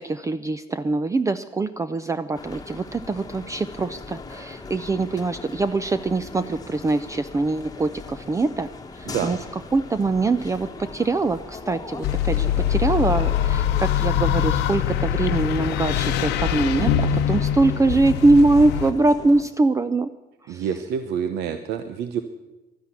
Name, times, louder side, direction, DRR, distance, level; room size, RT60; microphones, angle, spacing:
voice 1, 0.0-8.7 9.0-9.4 9.7-20.1 20.5-20.7, right 3 dB, 20° right, 12 dB, 0.5 m, -23 dB
sound 1, 2.3-19.4, left 4 dB, 20° left, 1.3 m, -39 dB
voice 2, 9.0-9.4 16.8-17.2 20.5-22.2, right 8 dB, 80° right, 9 dB, 0.9 m, -28 dB
sound 2, 12.0-18.9, left 10 dB, 90° left, 0.9 m, -23 dB
12.0 x 10.0 x 9.6 m, 1.1 s
cardioid pair, 110°, 17 cm